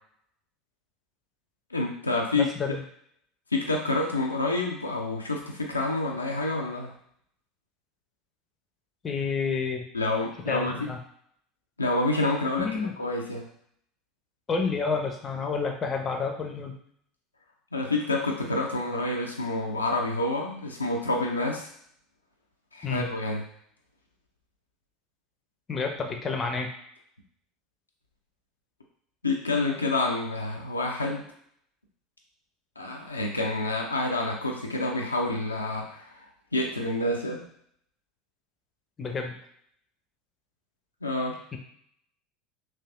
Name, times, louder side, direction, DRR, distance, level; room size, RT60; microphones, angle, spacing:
voice 1, 1.7-2.8 3.5-6.9 9.9-10.9 11.8-13.5 17.7-21.7 22.7-23.4 29.2-31.2 32.8-36.3 36.5-37.5 41.0-41.4, left 2 dB, 85° left, 0 dB, 0.4 m, -28 dB
voice 2, 2.4-2.8 9.0-9.8 10.5-11.0 12.6-12.9 14.5-16.7 22.8-23.1 25.7-26.7 39.0-39.4 41.5-41.6, left 5 dB, 30° left, 3 dB, 0.5 m, -29 dB
3.2 x 2.5 x 2.5 m, 0.67 s
figure-of-eight pair, 70°, 0 cm